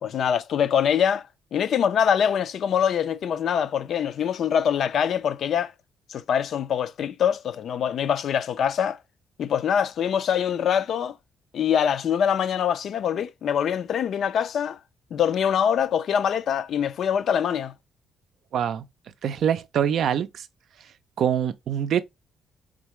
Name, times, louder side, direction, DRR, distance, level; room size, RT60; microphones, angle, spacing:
voice 1, 0.0-5.7 6.1-9.0 9.4-11.2 11.5-14.8 15.1-17.7, left 8 dB, 65° left, 0.4 m, -24 dB
voice 2, 18.5-18.9 19.2-20.5 21.2-22.0, right 9 dB, 70° right, 0.4 m, -24 dB
3.8 x 3.6 x 3.0 m
cardioid pair, 90°, 0 cm